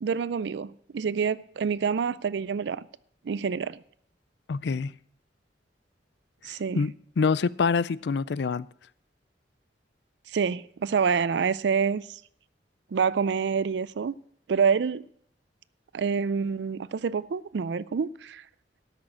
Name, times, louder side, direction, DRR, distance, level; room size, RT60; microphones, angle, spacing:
voice 1, 0.0-2.9 3.3-3.8 6.5-6.8 10.3-12.2 12.9-14.1 14.5-15.0 15.9-18.4, right 6 dB, 70° right, 0.4 m, -27 dB
voice 2, 4.5-4.9 6.5-8.7, left 5 dB, 70° left, 0.4 m, -26 dB
12.5 x 6.4 x 7.2 m
head